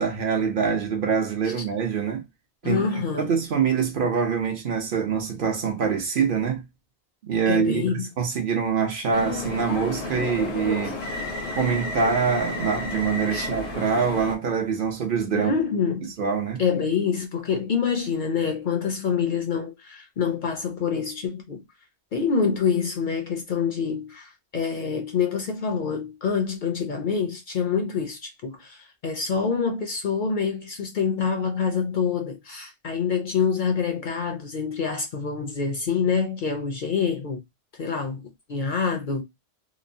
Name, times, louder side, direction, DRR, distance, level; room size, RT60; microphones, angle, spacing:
voice 1, 0.0-2.2 2.6-2.8 3.1-6.7 7.2-11.0 11.5-15.5 16.2-16.6, right 6 dB, 60° right, 0.7 m, -25 dB
voice 2, 2.6-3.4 7.5-8.1 10.8-10.9 13.3-13.5 15.3-16.1 16.6-21.6 22.1-37.4 37.7-39.2, left 6 dB, 55° left, 0.6 m, -26 dB
sound 1, 9.1-14.3, left 2 dB, 80° left, 1.0 m, -31 dB
2.9 x 2.0 x 2.5 m
omnidirectional pair, 1.1 m